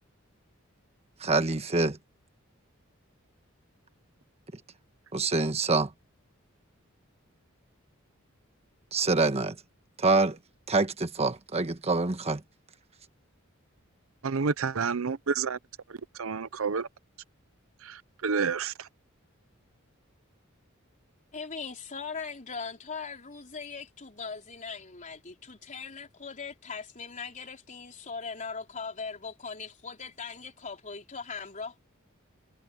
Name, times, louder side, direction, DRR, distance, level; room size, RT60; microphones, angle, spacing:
voice 1, 1.2-2.0 5.1-5.9 8.9-9.5 10.0-10.4 10.7-12.4, right 3 dB, 30° right, 1.3 m, -25 dB
voice 2, 14.2-15.6 16.2-16.9 17.8-18.7, right 5 dB, 75° right, 0.7 m, -29 dB
voice 3, 21.3-31.8, left 5 dB, 40° left, 3.9 m, -40 dB
head